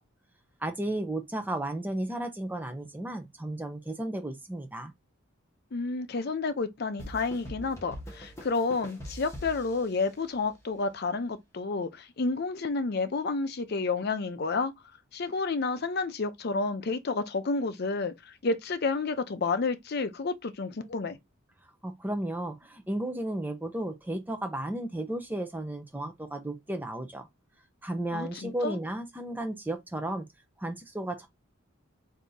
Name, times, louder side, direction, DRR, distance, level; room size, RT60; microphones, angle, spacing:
voice 1, 0.6-4.9 21.8-27.3 27.8-30.3 30.6-31.3, right 1 dB, 10° right, 0.6 m, -34 dB
voice 2, 5.7-14.7 15.1-21.2 28.1-28.8, left 3 dB, 50° left, 0.5 m, -30 dB
sound 1, 7.0-10.6, equal, 15° left, 1.1 m, -43 dB
3.5 x 2.7 x 3.8 m
head